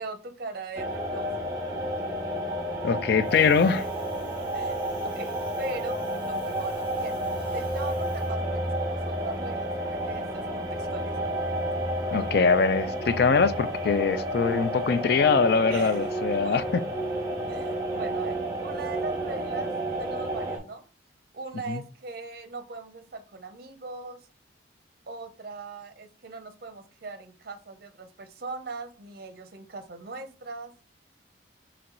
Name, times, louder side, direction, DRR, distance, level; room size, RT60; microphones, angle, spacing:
voice 1, 0.0-1.5 4.2-7.2 7.5-11.3 15.7-16.0 16.3-16.7 17.5-19.7 20.0-20.8 21.3-24.3 25.1-30.7, right 3 dB, 50° right, 0.6 m, -40 dB
sound 1, 0.7-20.6, right 1 dB, 20° right, 1.2 m, -31 dB
voice 2, 2.8-3.9 12.1-16.6 21.7-21.8, left 5 dB, 55° left, 0.3 m, -23 dB
Wind, 3.2-8.3, right 1 dB, 30° left, 1.7 m, -44 dB
4.5 x 3.0 x 3.8 m
head